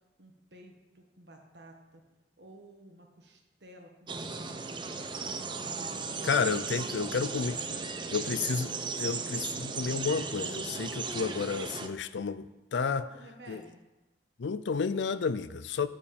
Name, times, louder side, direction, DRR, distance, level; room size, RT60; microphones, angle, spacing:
voice 1, 0.2-2.0 2.4-7.0 7.3-8.8 12.8-13.8, right 1 dB, 70° right, 2 dB, 1.6 m, -53 dB
sound 1, 4.1-11.9, right 4 dB, 25° right, 0.6 m, -36 dB
voice 2, 6.2-7.6 8.1-13.0 13.5-13.6 14.4-15.9, left 5 dB, 85° left, 15 dB, 0.5 m, -31 dB
10.5 x 4.8 x 7.0 m, 1.1 s
head